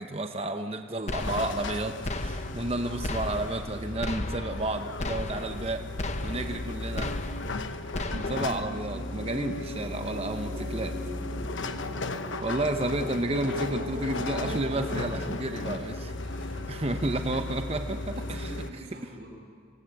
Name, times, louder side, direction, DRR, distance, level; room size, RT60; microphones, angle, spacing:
voice 1, 0.0-5.8 6.2-7.1 7.5-7.8 8.1-11.0 11.6-11.7 12.1-16.1 16.7-18.5, right 2 dB, 30° right, 6 dB, 0.9 m, -32 dB
sound 1, 1.1-1.8 2.0-2.7 3.0-3.7 4.0-4.7 5.0-5.7 6.0-6.7 7.0-7.7 7.9-8.6, left 2 dB, 35° left, 1.1 m, -35 dB
sound 2, 1.2-18.7, left 2 dB, 90° left, 1.1 m, -35 dB
sound 3, 1.9-15.1, equal, 80° right, 7.5 m, -42 dB
voice 2, 16.0-17.0 18.0-19.3, equal, 60° right, -1 dB, 6.3 m, -45 dB
25.0 x 18.5 x 8.2 m, 2.2 s
head